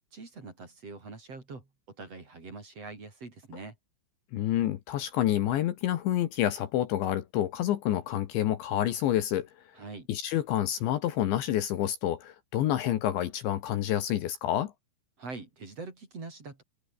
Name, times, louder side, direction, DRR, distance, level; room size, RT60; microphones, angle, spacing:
voice 1, 0.1-3.8 9.7-10.1 15.2-16.6, right 3 dB, 30° right, 5.2 m, -44 dB
voice 2, 4.3-9.5 10.1-14.7, left 12 dB, 70° left, 3.5 m, -28 dB
open air
omnidirectional pair, 6.0 m